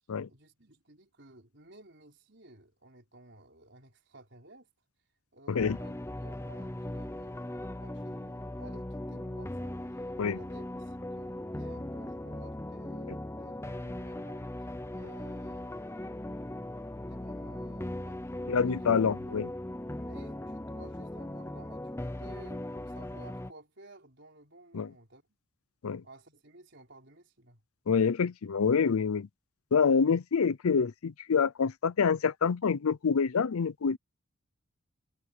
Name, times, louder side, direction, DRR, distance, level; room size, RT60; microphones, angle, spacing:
voice 1, 0.3-4.7 5.3-14.5 14.9-16.0 17.1-18.6 19.9-25.4 26.0-27.6, right 2 dB, 55° right, 4.9 m, -55 dB
sound 1, 5.6-23.5, left 1 dB, 10° left, 0.6 m, -39 dB
voice 2, 18.5-19.5 24.7-24.9 25.8-26.0 27.9-29.3 29.7-34.0, left 6 dB, 85° left, 0.5 m, -26 dB
head